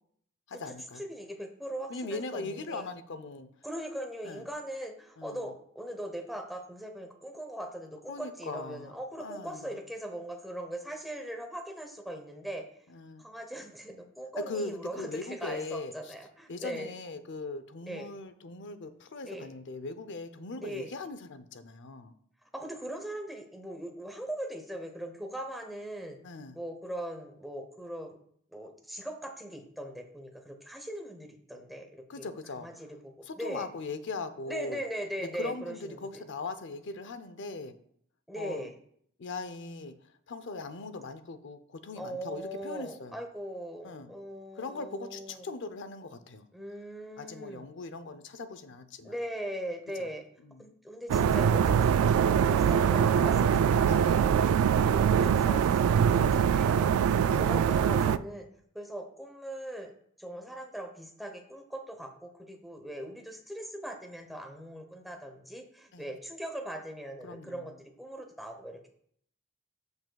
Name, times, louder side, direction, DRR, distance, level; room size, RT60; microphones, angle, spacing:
voice 1, 0.5-1.0 1.9-3.5 4.2-4.4 5.2-5.5 8.1-9.8 12.9-13.2 14.4-16.1 16.5-22.1 26.2-26.6 32.1-32.7 33.2-34.8 35.2-37.8 38.4-38.7 39.2-40.0 40.3-43.2 43.8-44.1 44.5-46.5 47.2-49.2 50.0-50.1 50.4-50.7 51.8-52.0 53.8-54.2 57.3-57.6 65.9-66.1 67.2-67.7, left 3 dB, 60° left, 11 dB, 0.6 m, -40 dB
voice 2, 1.0-2.9 3.6-12.7 13.2-16.9 17.9-18.1 19.2-19.5 20.6-20.9 22.5-26.2 26.5-28.2 28.5-32.3 32.6-33.7 34.5-36.2 38.3-38.7 42.0-45.5 46.5-47.6 49.0-50.2 50.6-58.5 58.7-59.9 60.2-68.9, right 1 dB, ahead, 3 dB, 0.8 m, -40 dB
sound 1, 51.1-58.2, right 8 dB, 85° right, 0.3 m, -23 dB
13.5 x 5.3 x 2.3 m, 0.65 s
head